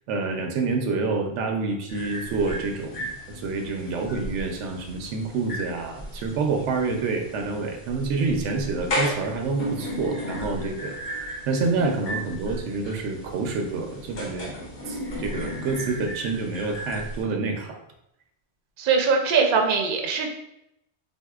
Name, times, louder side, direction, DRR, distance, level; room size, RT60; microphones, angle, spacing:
voice 1, 0.1-14.6 14.9-17.8, right 4 dB, 90° right, 3 dB, 0.9 m, -28 dB
sound 1, 1.9-17.2, equal, 60° left, 1.0 m, -35 dB
voice 2, 18.8-20.3, right 5 dB, 60° right, 3 dB, 0.6 m, -21 dB
3.7 x 2.7 x 2.3 m, 0.81 s
omnidirectional pair, 1.2 m